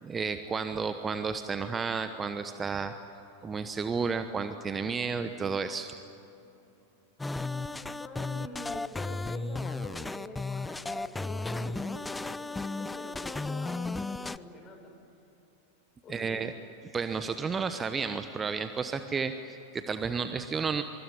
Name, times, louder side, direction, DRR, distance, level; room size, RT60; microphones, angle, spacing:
voice 1, 0.0-2.9 3.4-5.9 16.1-16.5 16.8-20.8, right 5 dB, 20° right, 9 dB, 1.0 m, -32 dB
voice 2, 7.2-14.9 16.0-16.4, left 2 dB, 25° left, 4 dB, 6.7 m, -46 dB
sound 1, 7.2-14.4, left 3 dB, 10° left, 0.6 m, -34 dB
24.5 x 24.0 x 9.8 m, 3.0 s
figure-of-eight pair, 90°, 0 cm